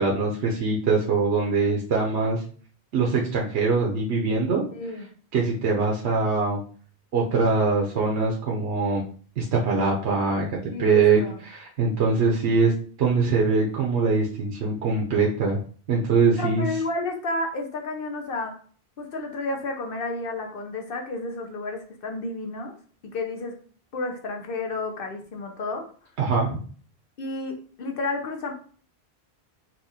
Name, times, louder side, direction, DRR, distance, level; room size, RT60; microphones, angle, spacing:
voice 1, 0.0-2.4 2.9-4.6 5.3-6.6 7.1-9.0 9.4-10.5 10.8-12.7 13.0-15.6 15.9-16.7 26.2-26.6, right 4 dB, 85° right, -2 dB, 1.0 m, -22 dB
voice 2, 4.7-5.1 10.7-11.4 16.3-18.5 19.0-22.7 23.0-23.6 23.9-25.8 27.2-28.5, left 2 dB, 60° left, 3 dB, 0.8 m, -31 dB
4.2 x 2.3 x 2.7 m, 0.44 s
omnidirectional pair, 1.1 m